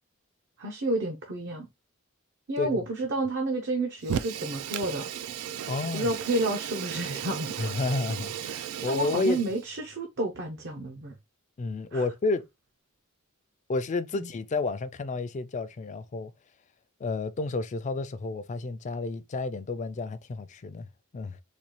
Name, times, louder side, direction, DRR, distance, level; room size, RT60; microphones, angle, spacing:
voice 1, 0.6-1.7 2.5-5.1 5.9-7.7 8.5-11.1 11.9-12.0 14.1-14.3, right 2 dB, 55° right, 0.7 m, -31 dB
Fire, 4.0-9.6, right 9 dB, 80° right, 0.3 m, -35 dB
voice 2, 5.6-6.1 7.6-9.4 11.6-12.4 13.7-16.3 17.0-20.9 21.1-21.4, left 3 dB, 35° left, 0.4 m, -31 dB
4.1 x 2.4 x 2.9 m
head